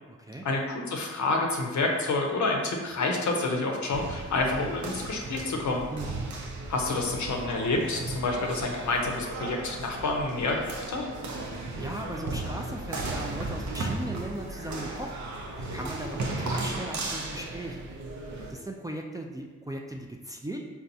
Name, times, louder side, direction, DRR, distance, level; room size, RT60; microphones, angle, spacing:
voice 1, 0.4-5.8 6.7-11.1, left 2 dB, 70° left, 1 dB, 0.6 m, -28 dB
sound 1, 3.9-18.5, right 2 dB, 75° right, 0.6 m, -35 dB
voice 2, 11.5-15.2 15.6-17.8 18.5-20.6, right 1 dB, 15° right, 1 dB, 0.3 m, -38 dB
3.9 x 2.3 x 2.7 m, 1.3 s
cardioid pair, 45°, 30 cm